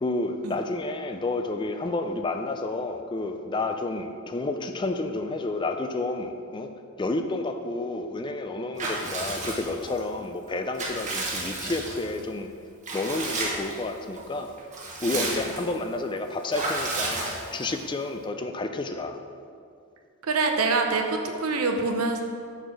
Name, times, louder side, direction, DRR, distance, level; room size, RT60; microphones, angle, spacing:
voice 1, 0.0-6.7 7.0-12.5 12.9-14.5 15.0-19.2, left 2 dB, 20° left, 7 dB, 0.4 m, -30 dB
Water / Bathtub (filling or washing) / Liquid, 8.8-10.0 10.5-12.2 12.8-13.8 14.2-14.3 14.6-15.8 16.5-17.8, right 2 dB, 35° right, 1.2 m, -32 dB
voice 2, 20.2-22.2, right 3 dB, 85° right, 3 dB, 0.8 m, -25 dB
6.7 x 4.6 x 6.1 m, 2.3 s
head